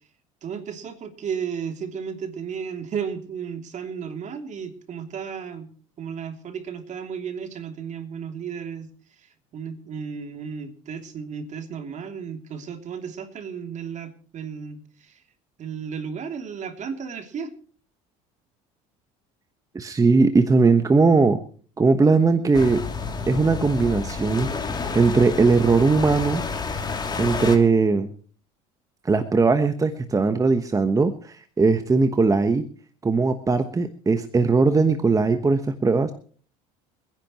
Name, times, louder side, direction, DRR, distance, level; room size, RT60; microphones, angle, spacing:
voice 1, 0.4-5.7 6.0-8.9 9.2-15.2 15.6-17.5, right 7 dB, 45° right, 6 dB, 2.9 m, -34 dB
voice 2, 19.7-21.4 21.8-22.9 23.3-26.4 27.2-28.1 29.0-32.6 33.0-36.1, right 4 dB, 20° right, 9 dB, 1.2 m, -19 dB
sound 1, 22.5-27.6, left 4 dB, 25° left, 2.9 m, -29 dB
28.0 x 10.5 x 3.1 m, 0.42 s
supercardioid pair, 85°, 17 cm